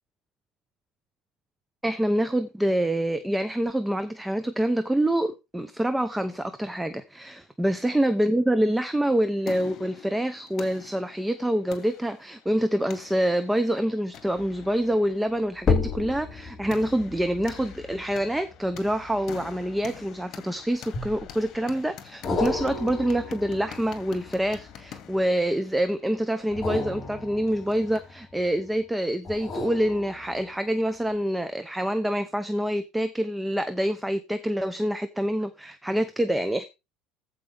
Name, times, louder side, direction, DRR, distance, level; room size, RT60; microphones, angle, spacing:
voice 1, 1.8-36.7, right 1 dB, 5° right, 0.8 m, -26 dB
sound 1, 9.0-28.2, left 8 dB, 45° left, 2.1 m, -47 dB
sound 2, 14.4-14.7 15.6-20.2 20.9-21.6 22.2-25.2 26.4-28.5 29.2-30.7 31.1-31.2, left 4 dB, 25° left, 4.4 m, -33 dB
14.5 x 5.2 x 3.5 m
supercardioid pair, 115°, 0 cm